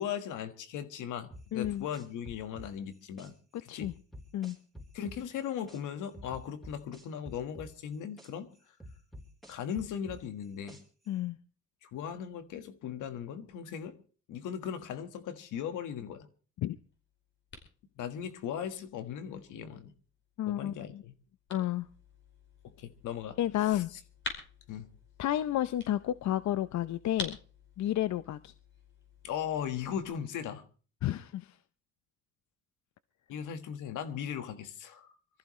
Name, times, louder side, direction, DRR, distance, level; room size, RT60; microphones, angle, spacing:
voice 1, 0.0-3.3 3.6-3.9 4.9-8.5 9.5-10.8 11.8-14.0 14.3-16.3 18.0-19.9 20.5-21.1 22.8-24.0 24.7-24.9 29.2-30.6 33.3-35.1, left 8 dB, 85° left, 1.6 m, -38 dB
sound 1, 1.3-3.3 3.8-5.8 6.1-8.3 8.8-11.1, equal, ahead, 3.9 m, -48 dB
voice 2, 1.5-1.8 3.7-3.9 4.3-4.6 11.1-11.4 16.6-16.8 20.4-21.0 21.5-21.9 23.4-23.9 25.2-27.4 27.8-28.5 31.0-31.6, left 13 dB, 65° left, 0.7 m, -31 dB
sound 2, 16.6-30.1, left 2 dB, 40° left, 5.0 m, -49 dB
24.5 x 14.5 x 3.2 m
cardioid pair, 90°, 30 cm